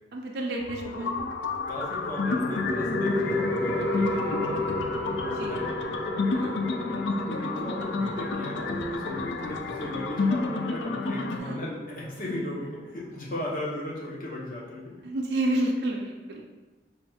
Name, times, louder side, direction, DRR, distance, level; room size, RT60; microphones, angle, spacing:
voice 1, 0.1-1.2 5.2-5.6 6.3-6.6 6.9-7.0 11.4-11.6 15.0-16.4, right 1 dB, 70° right, 0 dB, 0.4 m, -30 dB
sound 1, 0.6-11.4, left 3 dB, 85° left, 0.4 m, -30 dB
voice 2, 0.7-1.1 1.7-4.6 5.4-5.7 7.3-14.9, left 1 dB, 50° left, -5 dB, 0.8 m, -36 dB
sound 2, 1.8-12.8, left 1 dB, 5° left, 0.6 m, -33 dB
3.2 x 2.3 x 4.1 m, 1.2 s
head